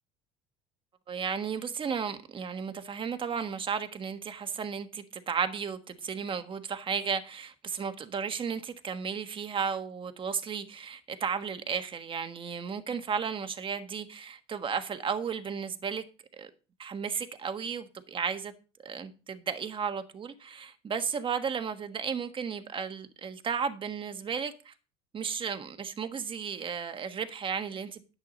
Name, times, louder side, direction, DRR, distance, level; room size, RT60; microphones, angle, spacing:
voice 1, 1.1-16.0 16.3-16.5 16.8-18.5 18.8-24.7 25.1-28.0, right 6 dB, 30° right, 1.5 m, -34 dB
10.5 x 8.2 x 4.1 m
supercardioid pair, 100°, 16 cm